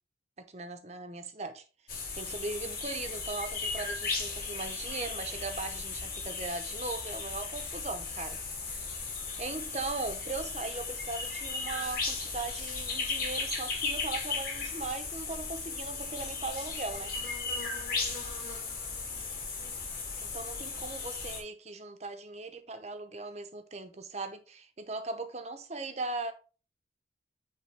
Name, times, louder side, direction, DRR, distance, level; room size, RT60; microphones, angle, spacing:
voice 1, 0.4-1.6 1.9-9.0 9.4-17.1 20.2-26.3, right 3 dB, 35° right, 0.8 m, -39 dB
sound 1, 1.9-21.4, left 4 dB, 50° left, 2.5 m, -36 dB
9.4 x 3.4 x 3.3 m
head